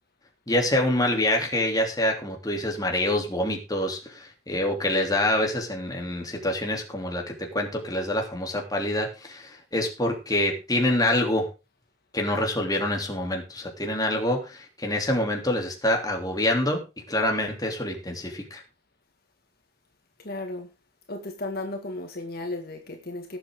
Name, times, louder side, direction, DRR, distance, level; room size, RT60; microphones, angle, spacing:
voice 1, 0.5-11.5 12.1-18.6, left 1 dB, 20° left, 3.2 m, -26 dB
voice 2, 20.2-20.7 21.1-23.4, left 2 dB, 55° left, 2.0 m, -34 dB
18.5 x 8.2 x 3.8 m
head